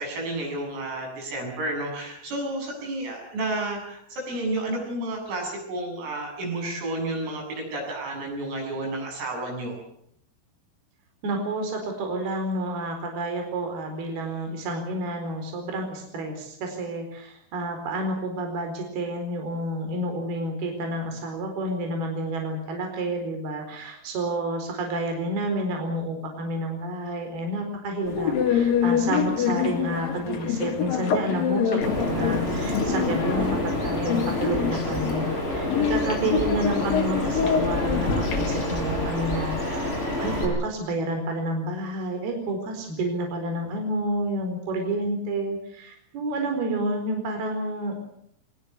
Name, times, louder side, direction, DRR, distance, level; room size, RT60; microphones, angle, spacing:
voice 1, 0.0-9.8, right 2 dB, 90° right, 1 dB, 10.5 m, -31 dB
voice 2, 11.2-48.0, right 1 dB, 50° right, 4 dB, 6.0 m, -30 dB
sound 1, 28.1-38.7, left 7 dB, 55° left, 3.3 m, -26 dB
Bird vocalization bird call bird song, 31.8-40.4, left 1 dB, 10° left, 6.3 m, -28 dB
23.5 x 20.5 x 8.3 m, 0.71 s
omnidirectional pair, 5.8 m